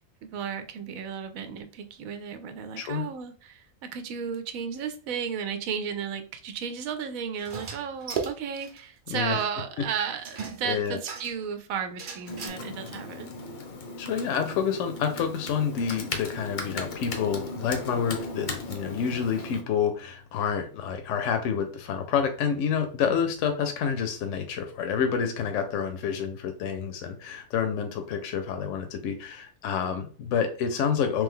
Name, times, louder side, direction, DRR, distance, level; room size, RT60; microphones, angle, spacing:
voice 1, 0.2-13.3, right 7 dB, 85° right, 9 dB, 1.0 m, -34 dB
sound 1, 7.4-8.8 9.1-9.2 9.4-9.5 10.2-11.4 12.0-12.5, right 6 dB, 50° right, 0.6 m, -36 dB
voice 2, 10.6-11.0 14.0-31.2, left 7 dB, 70° left, 6 dB, 0.9 m, -28 dB
Computer keyboard, 12.3-19.6, left 3 dB, 45° left, 0.6 m, -37 dB
3.3 x 3.0 x 3.6 m, 0.41 s
omnidirectional pair, 1.4 m